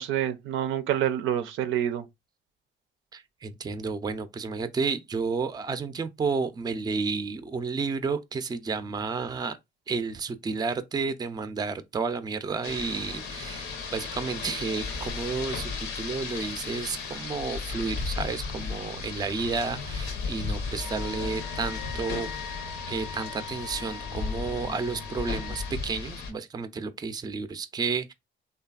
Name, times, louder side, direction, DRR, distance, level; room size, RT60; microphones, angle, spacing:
voice 1, 0.0-2.1, right 10 dB, 85° right, 0.4 m, -27 dB
voice 2, 3.1-9.6 9.9-22.3 22.9-28.1, right 4 dB, 20° right, 0.4 m, -31 dB
Rain, 12.6-26.3, left 4 dB, 90° left, 0.8 m, -35 dB
Wind instrument woodwind instrument, 20.8-25.7, left 6 dB, 70° left, 0.4 m, -42 dB
3.2 x 2.3 x 2.3 m
cardioid pair, 90°, 20 cm